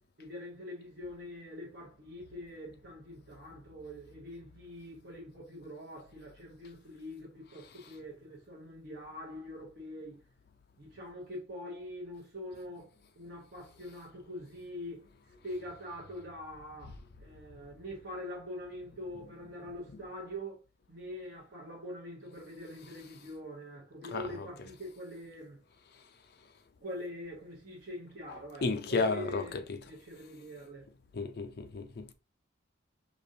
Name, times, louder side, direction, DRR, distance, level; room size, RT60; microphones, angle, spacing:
voice 1, 0.2-10.2 10.8-20.6 20.9-25.6 26.8-30.9, left 1 dB, 50° right, 0.9 m, -44 dB
voice 2, 24.0-24.5 28.6-29.8 31.1-32.1, left 3 dB, 50° left, 0.5 m, -33 dB
5.0 x 2.4 x 2.6 m
head